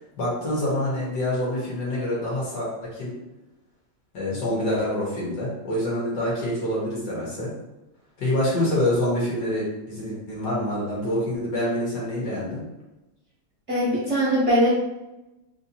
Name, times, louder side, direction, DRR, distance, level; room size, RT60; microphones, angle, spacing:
voice 1, 0.2-3.1 4.1-7.5 8.2-12.6, left 1 dB, 60° left, -6 dB, 1.7 m, -26 dB
voice 2, 13.7-14.7, equal, 50° right, -7 dB, 0.9 m, -21 dB
4.3 x 2.4 x 2.7 m, 1.0 s
omnidirectional pair, 2.1 m